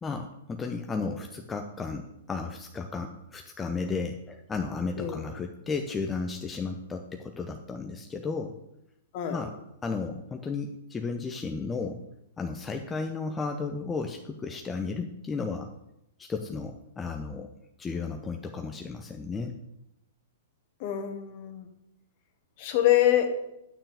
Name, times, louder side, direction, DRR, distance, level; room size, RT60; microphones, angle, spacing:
voice 1, 0.0-8.6 9.3-12.0 12.4-15.7 16.2-17.5 17.8-19.6, left 4 dB, 15° left, 4 dB, 0.7 m, -34 dB
voice 2, 9.1-9.4 20.8-21.7 22.6-23.4, left 12 dB, 45° left, 7 dB, 1.4 m, -25 dB
9.8 x 8.8 x 3.5 m, 0.85 s
figure-of-eight pair, 110°, 0 cm